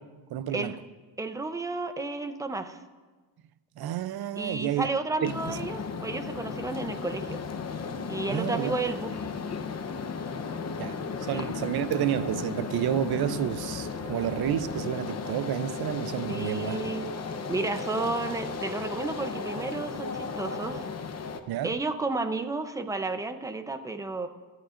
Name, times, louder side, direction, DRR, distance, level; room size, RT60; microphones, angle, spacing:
voice 1, 0.3-0.7 3.8-4.9 5.2-5.6 8.3-8.8 10.8-16.8 21.5-21.7, right 11 dB, 60° right, 0.6 m, -30 dB
voice 2, 1.2-2.8 4.4-7.4 8.1-9.3 11.3-11.5 16.3-17.1 17.5-20.9 21.6-24.3, right 3 dB, 10° right, 0.6 m, -32 dB
sound 1, 5.2-21.4, left 5 dB, 35° left, 0.9 m, -35 dB
25.0 x 14.0 x 2.5 m
cardioid pair, 155°, 43 cm